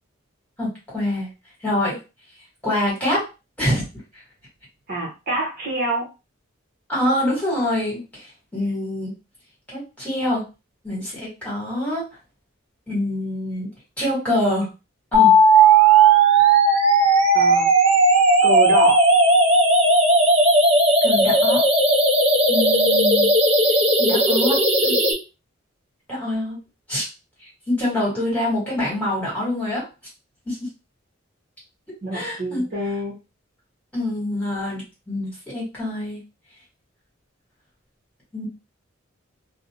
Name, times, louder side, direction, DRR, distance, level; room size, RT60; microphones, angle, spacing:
voice 1, 0.6-1.3 1.6-2.0 2.6-3.2 3.6-3.8 6.9-9.1 9.7-10.4 10.8-12.1 12.9-13.7 14.0-14.7 15.1-15.3 21.0-21.6 22.5-23.3 24.0-25.0 26.1-26.6 26.9-27.0 27.7-29.8 30.4-30.7 32.1-32.6 33.9-34.8 35.1-36.2 38.3-38.5, left 1 dB, 5° left, -7 dB, 1.5 m, -25 dB
voice 2, 4.9-6.1 17.3-17.7 18.4-19.0 32.0-33.1, right 1 dB, 50° right, -2 dB, 0.8 m, -26 dB
sound 1, 15.1-25.1, right 2 dB, 30° right, 0.5 m, -16 dB
2.5 x 2.0 x 2.8 m, 0.29 s
head